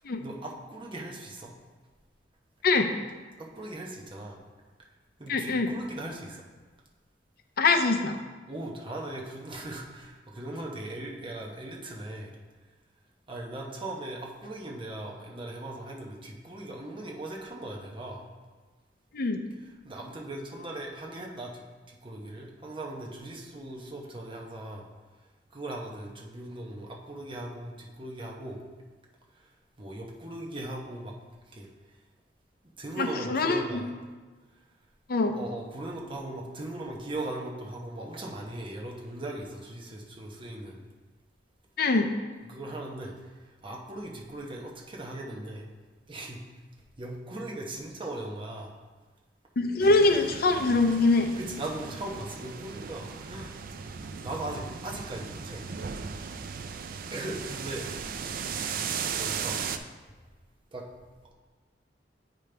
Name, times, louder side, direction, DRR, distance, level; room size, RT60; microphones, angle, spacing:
voice 1, 0.2-1.5 3.4-4.4 5.2-6.4 8.5-12.3 13.3-18.3 19.8-24.8 25.5-28.6 29.8-31.1 31.5-31.7 32.8-34.0 35.3-40.8 42.4-43.1 43.6-45.7 46.1-46.4 47.0-48.7 51.4-53.5 54.2-55.6 57.1-58.1 59.1-59.6 60.7-60.9, right 1 dB, 30° right, -1 dB, 0.9 m, -39 dB
voice 2, 5.3-5.7 7.6-8.2 19.1-19.4 33.0-33.8 35.1-35.4 41.8-42.1 49.6-51.3, left 3 dB, 55° left, 6 dB, 0.5 m, -23 dB
sound 1, 49.8-59.8, right 6 dB, 50° right, 0.4 m, -37 dB
8.4 x 5.1 x 3.3 m, 1.4 s
head